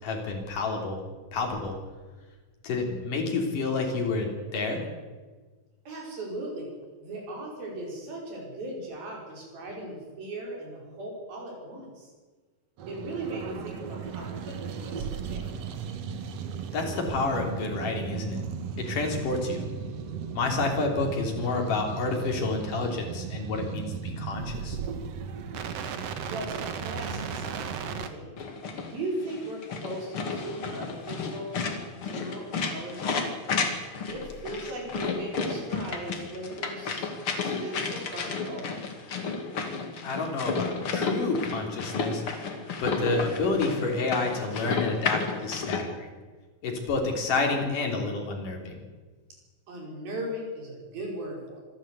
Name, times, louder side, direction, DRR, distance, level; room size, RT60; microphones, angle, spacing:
voice 1, 0.0-1.0 1.3-1.8 2.6-4.8 16.7-18.4 18.8-19.6 20.3-24.8 40.0-42.2 42.8-46.1 46.6-48.8, left 3 dB, 65° left, 3 dB, 4.7 m, -29 dB
voice 2, 5.9-6.7 7.0-12.1 12.9-15.5 26.3-28.3 28.9-31.6 31.9-33.2 34.1-38.7 49.7-51.6, right 1 dB, 85° right, -1 dB, 7.2 m, -38 dB
sound 1, 12.8-28.1, right 6 dB, 55° right, 2.0 m, -36 dB
sound 2, 28.4-45.8, left 4 dB, 40° left, 2.6 m, -32 dB
25.0 x 13.0 x 8.2 m, 1.4 s
omnidirectional pair, 4.1 m